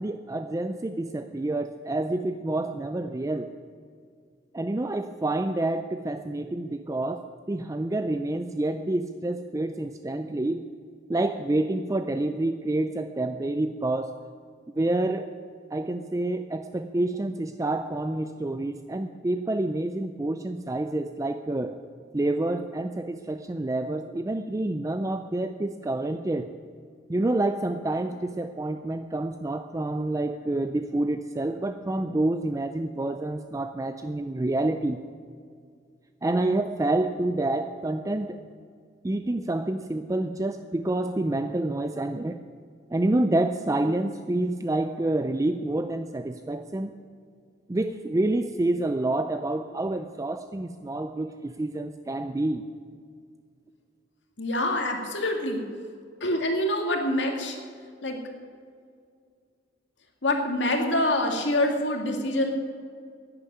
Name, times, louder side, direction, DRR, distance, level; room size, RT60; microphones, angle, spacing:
voice 1, 0.0-3.5 4.5-10.6 11.1-14.1 14.7-15.3 15.7-21.8 22.1-26.5 27.1-35.0 36.2-38.4 39.0-42.4 42.9-46.9 47.7-52.6, right 2 dB, 20° right, 9 dB, 0.4 m, -28 dB
voice 2, 54.4-55.6 56.2-57.6 58.0-58.2 60.2-62.5, left 1 dB, 90° left, 2 dB, 2.1 m, -25 dB
11.0 x 10.0 x 9.5 m, 2.2 s
head